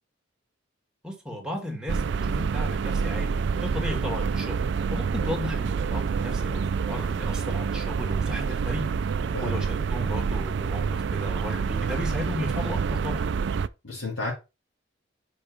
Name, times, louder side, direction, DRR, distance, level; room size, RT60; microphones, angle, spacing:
voice 1, 1.0-8.9 9.4-13.2, left 1 dB, 5° right, 1.9 m, -35 dB
sound 1, 1.9-13.7, right 5 dB, 60° right, 0.4 m, -27 dB
voice 2, 13.8-14.3, left 2 dB, 70° left, 3.1 m, -32 dB
5.5 x 5.3 x 4.6 m
head